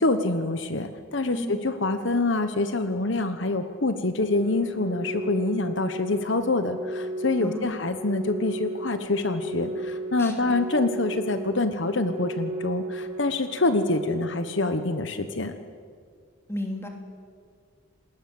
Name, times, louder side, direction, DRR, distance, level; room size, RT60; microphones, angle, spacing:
voice 1, 0.0-15.5, left 2 dB, 60° left, 9 dB, 1.2 m, -26 dB
Organ, 4.2-15.2, right 1 dB, 30° right, 4.0 m, -35 dB
voice 2, 7.4-7.8 10.2-10.5 16.5-16.9, left 1 dB, 10° left, 3 dB, 3.0 m, -33 dB
28.5 x 20.0 x 7.9 m, 2.1 s
head